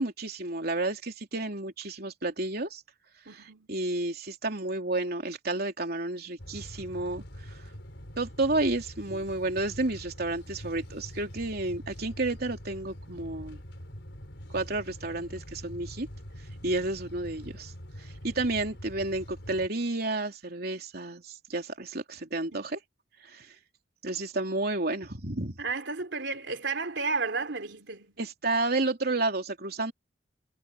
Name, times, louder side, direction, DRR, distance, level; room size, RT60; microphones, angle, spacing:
voice 1, 0.0-2.8 3.7-7.6 8.2-13.6 14.5-16.1 16.6-17.7 18.0-22.8 23.3-23.5 24.0-25.6 28.2-29.9, right 2 dB, 60° right, 3.4 m, -31 dB
voice 2, 3.3-3.7 22.5-22.6 25.6-28.2, right 4 dB, 85° right, 3.0 m, -33 dB
sound 1, 6.4-19.7, equal, 80° left, 4.9 m, -44 dB
head